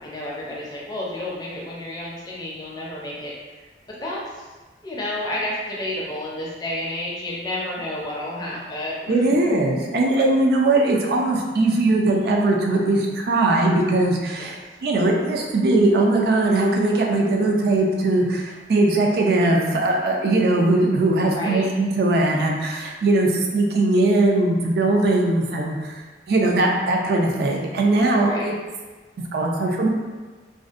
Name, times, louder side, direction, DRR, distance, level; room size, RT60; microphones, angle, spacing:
voice 1, 0.0-4.4 4.8-9.5 14.4-14.5 21.3-21.7 28.2-28.5, left 1 dB, 25° left, -5 dB, 0.4 m, -31 dB
voice 2, 9.1-28.5 29.3-29.9, right 2 dB, 60° right, 0 dB, 0.3 m, -20 dB
2.5 x 2.1 x 2.4 m, 1.3 s
head